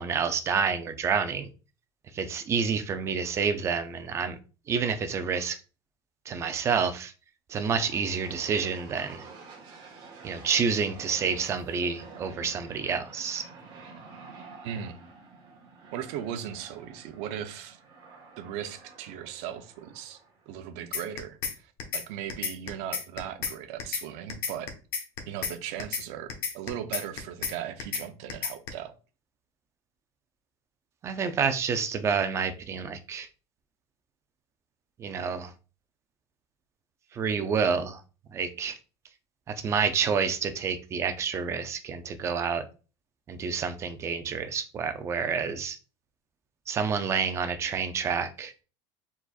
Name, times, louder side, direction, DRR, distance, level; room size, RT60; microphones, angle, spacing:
voice 1, 0.0-1.5 2.1-4.4 4.7-5.6 6.3-7.1 7.5-9.2 10.2-13.4 31.0-33.3 35.0-35.5 37.1-38.0 38.3-38.7 39.6-42.6 43.3-45.8 46.7-48.5, right 6 dB, 20° right, 0.4 m, -28 dB
sound 1, 7.7-20.9, right 4 dB, 40° right, 1.4 m, -49 dB
voice 2, 14.6-15.0 15.9-17.8 18.4-20.2 20.5-24.7 25.3-28.9, right 10 dB, 65° right, 0.6 m, -38 dB
sound 2, 20.9-21.5 21.8-22.0 22.3-23.5 23.8-24.0 24.3-25.5 25.8-26.0 26.3-27.5 27.8-28.0 28.3-28.7, left 7 dB, 75° left, 1.1 m, -31 dB
4.7 x 4.0 x 2.4 m
cardioid pair, 175°, 13 cm